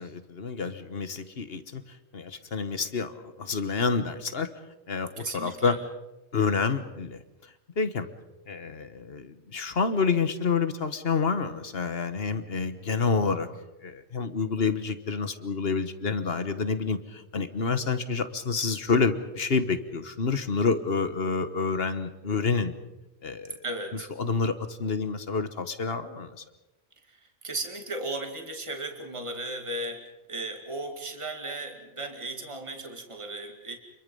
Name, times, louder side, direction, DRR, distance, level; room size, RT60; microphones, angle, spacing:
voice 1, 0.0-1.8 2.1-4.5 4.9-5.8 6.3-7.2 7.8-8.1 8.5-13.5 13.8-22.7 23.2-23.6 24.2-26.4, left 5 dB, 60° left, 10 dB, 1.5 m, -28 dB
voice 2, 5.2-5.8 23.6-24.1 27.1-33.8, right 2 dB, 25° right, 4 dB, 2.2 m, -36 dB
28.5 x 23.0 x 5.5 m, 1.0 s
omnidirectional pair, 1.1 m